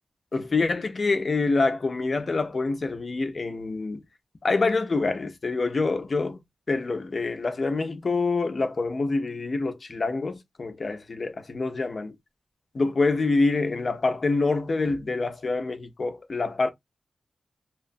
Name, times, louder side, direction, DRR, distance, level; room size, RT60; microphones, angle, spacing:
voice 1, 0.3-4.0 4.4-6.4 6.7-12.2 12.7-16.7, left 3 dB, 55° left, 0.6 m, -26 dB
2.9 x 2.0 x 2.5 m
cardioid pair, 65°, 0 cm